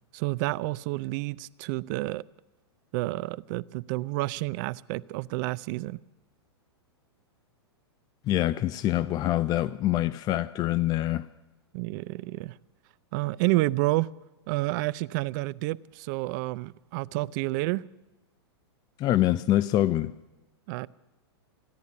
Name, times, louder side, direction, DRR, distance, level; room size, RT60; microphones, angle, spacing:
voice 1, 0.1-2.2 2.9-6.0 11.7-12.6 13.1-14.1 14.5-17.8 20.7-20.9, right 20 dB, 45° right, 0.4 m, -29 dB
voice 2, 8.3-11.3 19.0-20.1, left 13 dB, 30° left, 0.5 m, -25 dB
15.5 x 10.5 x 8.3 m
hypercardioid pair, 110°, 14 cm